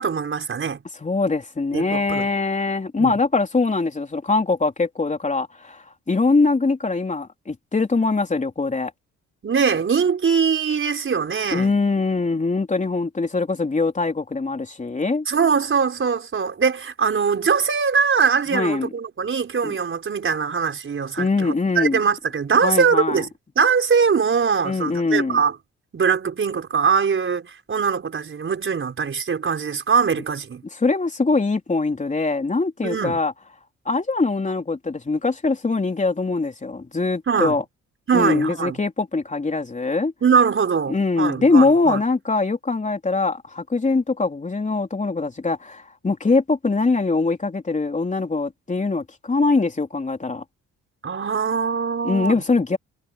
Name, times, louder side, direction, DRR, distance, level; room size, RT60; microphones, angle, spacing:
voice 1, 0.0-0.8 1.7-2.3 3.0-3.1 9.4-11.7 15.3-23.3 23.6-25.5 25.9-30.6 32.8-33.2 37.3-37.6 38.1-38.8 40.2-42.0 51.0-52.4, right 6 dB, 40° right, 4.6 m, -22 dB
voice 2, 1.0-8.9 11.5-15.3 18.5-18.9 19.6-19.8 21.2-22.0 22.6-23.2 24.6-25.4 30.7-33.3 33.9-37.6 38.1-40.1 40.9-50.4 52.0-52.8, left 3 dB, 25° left, 3.8 m, -22 dB
cardioid pair, 90°, 30 cm